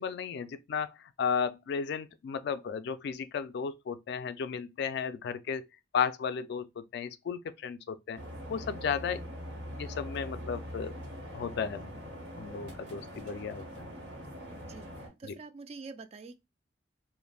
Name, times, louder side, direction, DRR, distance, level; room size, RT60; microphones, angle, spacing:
voice 1, 0.0-5.6 5.9-8.2 8.5-9.2 9.8-10.9 11.3-12.1 12.4-13.8 15.3-15.4, left 6 dB, 65° left, 0.3 m, -34 dB
sound 1, 8.1-15.1, equal, 75° right, 1.2 m, -43 dB
voice 2, 14.6-16.4, right 4 dB, 35° right, 0.3 m, -46 dB
3.3 x 2.0 x 2.3 m
head